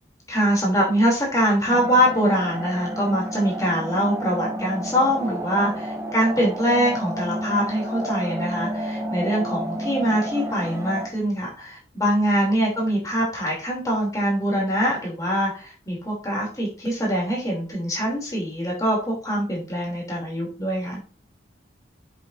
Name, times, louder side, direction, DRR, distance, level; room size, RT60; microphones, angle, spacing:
voice 1, 0.3-21.0, equal, 20° left, -3 dB, 3.1 m, -23 dB
sound 1, 1.7-11.1, right 1 dB, 15° right, 0.9 m, -31 dB
7.7 x 6.9 x 2.7 m, 0.37 s
head